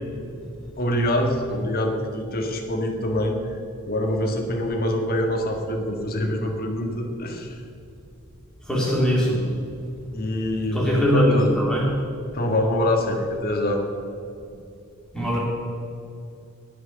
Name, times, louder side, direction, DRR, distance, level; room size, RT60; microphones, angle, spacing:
voice 1, 0.8-3.6 3.9-7.6 10.1-11.5 12.3-13.8, left 1 dB, 45° left, 3 dB, 1.8 m, -25 dB
voice 2, 8.7-9.4 10.7-11.8 15.1-15.4, equal, 5° left, -5 dB, 3.4 m, -21 dB
19.0 x 6.3 x 6.9 m, 2.7 s
head